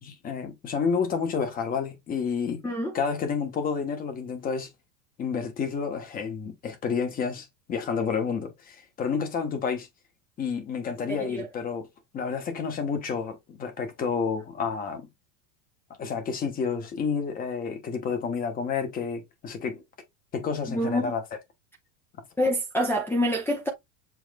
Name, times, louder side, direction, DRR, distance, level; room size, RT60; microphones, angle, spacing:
voice 1, 0.0-2.6 2.9-4.7 5.2-9.9 10.4-11.9 12.1-15.1 16.0-19.8 20.3-21.2, left 6 dB, 20° left, 1.1 m, -30 dB
voice 2, 20.7-21.1 22.4-23.7, equal, 5° left, 0.6 m, -26 dB
7.1 x 3.1 x 2.3 m
supercardioid pair, 160°, 40 cm